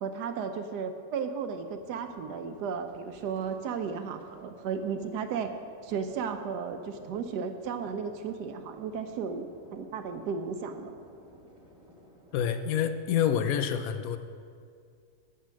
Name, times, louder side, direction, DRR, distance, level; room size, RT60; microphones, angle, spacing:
voice 1, 0.0-5.5 5.8-11.0, right 6 dB, 80° right, 7 dB, 1.2 m, -34 dB
sound 1, 1.7-13.0, right 1 dB, 20° right, 1.3 m, -54 dB
voice 2, 12.3-14.2, left 9 dB, 70° left, 9 dB, 1.0 m, -27 dB
8.2 x 8.2 x 6.3 m, 2.3 s
omnidirectional pair, 1.7 m